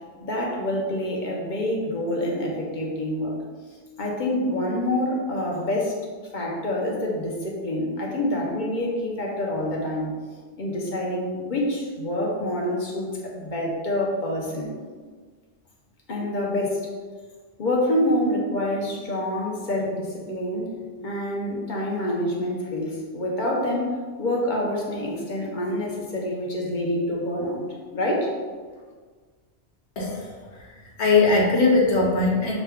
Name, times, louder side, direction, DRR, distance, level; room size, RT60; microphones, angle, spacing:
voice 1, 0.2-3.4 4.0-5.9 6.3-10.1 10.6-14.7 16.1-16.9 17.6-20.7 21.0-27.7 27.9-28.3, left 1 dB, 45° left, -2 dB, 0.8 m, -27 dB
voice 2, 30.0-32.5, left 3 dB, 70° left, -2 dB, 1.2 m, -21 dB
6.1 x 2.2 x 3.5 m, 1.5 s
omnidirectional pair, 1.2 m